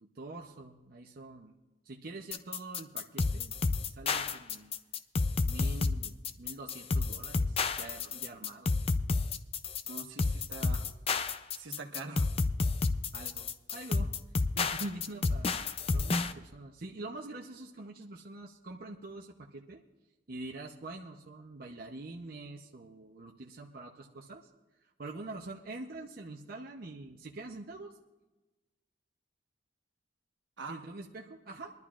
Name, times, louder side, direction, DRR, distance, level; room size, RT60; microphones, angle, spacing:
voice 1, 0.0-1.6 1.8-4.8 5.4-8.7 13.1-14.1 14.5-19.8 20.3-24.5 24.8-27.9 30.7-31.7, right 2 dB, 50° right, 0 dB, 0.7 m, -45 dB
sound 1, 2.3-16.3, left 3 dB, 30° left, 0.4 m, -30 dB
voice 2, 9.9-10.9 11.5-12.3 30.6-30.8, right 3 dB, 80° right, 3 dB, 1.3 m, -43 dB
22.0 x 12.0 x 2.4 m, 1.1 s
head